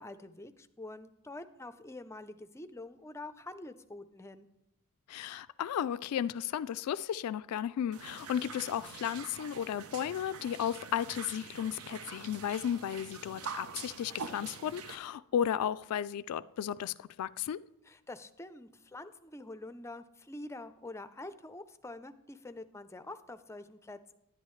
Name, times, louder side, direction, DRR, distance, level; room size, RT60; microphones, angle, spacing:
voice 1, 0.0-4.5 17.9-24.1, left 2 dB, 10° left, 0.4 m, -46 dB
voice 2, 5.1-17.6, left 9 dB, 85° left, 0.3 m, -34 dB
sound 1, 7.9-14.9, right 5 dB, 80° right, 0.7 m, -45 dB
10.5 x 9.8 x 3.2 m
head